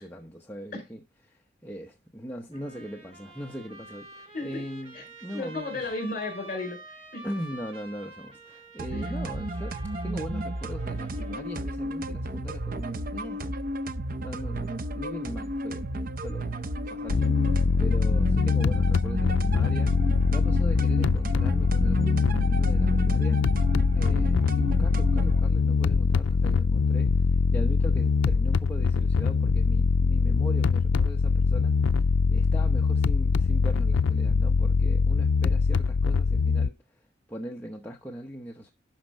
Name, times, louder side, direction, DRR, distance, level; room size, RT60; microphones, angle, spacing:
voice 1, 0.0-5.9 7.2-13.4 14.2-15.9 16.2-23.4 23.9-37.0 37.3-38.7, equal, 10° left, 0.9 m, -40 dB
Trumpet, 2.5-11.7, right 2 dB, 30° right, 2.4 m, -48 dB
voice 2, 5.3-7.3 8.9-9.0, left 2 dB, 45° left, 5.0 m, -34 dB
sound 1, 8.8-25.4, right 1 dB, 45° right, 0.7 m, -33 dB
sound 2, 17.1-36.7, left 5 dB, 85° left, 0.4 m, -23 dB
12.0 x 4.5 x 6.4 m
head